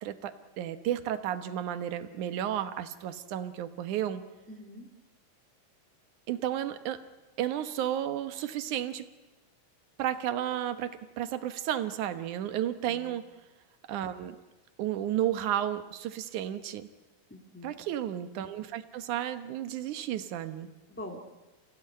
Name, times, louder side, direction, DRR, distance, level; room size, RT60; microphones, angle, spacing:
voice 1, 0.0-4.2 6.3-7.0 7.4-9.0 10.0-13.2 13.9-14.4 14.8-16.9 17.6-20.7, right 11 dB, 65° right, 10 dB, 2.3 m, -32 dB
voice 2, 4.5-4.9 12.9-13.2 17.3-17.8 20.9-21.2, left 1 dB, 5° left, 2 dB, 0.9 m, -44 dB
28.0 x 16.0 x 9.8 m, 1.1 s
omnidirectional pair, 4.1 m